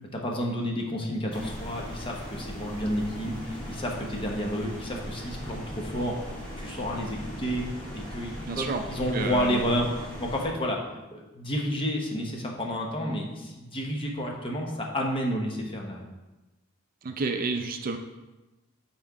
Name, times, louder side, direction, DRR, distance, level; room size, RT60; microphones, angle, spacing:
voice 1, 0.1-7.6 7.9-10.8 11.1-16.0, equal, 25° left, 0 dB, 0.9 m, -30 dB
sound 1, 1.3-10.5, equal, 5° left, 1.6 m, -39 dB
voice 2, 8.4-8.8 9.1-9.6 17.0-18.0, right 4 dB, 40° right, 5 dB, 0.4 m, -30 dB
5.8 x 4.3 x 4.7 m, 1.1 s
head